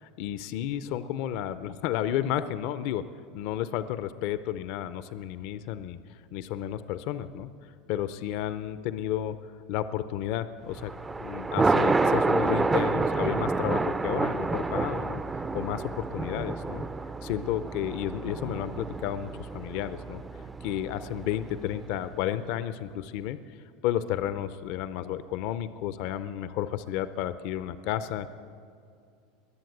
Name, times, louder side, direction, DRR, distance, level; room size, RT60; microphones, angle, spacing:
voice 1, 0.0-3.1 3.3-6.0 6.3-7.5 7.9-9.4 9.7-10.9 11.2-16.9 17.2-20.2 20.6-23.4 23.8-28.3, left 11 dB, 60° left, 13 dB, 0.6 m, -32 dB
Thunder, 10.7-22.1, right 3 dB, 15° right, 0.4 m, -29 dB
21.0 x 7.7 x 7.9 m, 2.4 s
supercardioid pair, 135°, 0 cm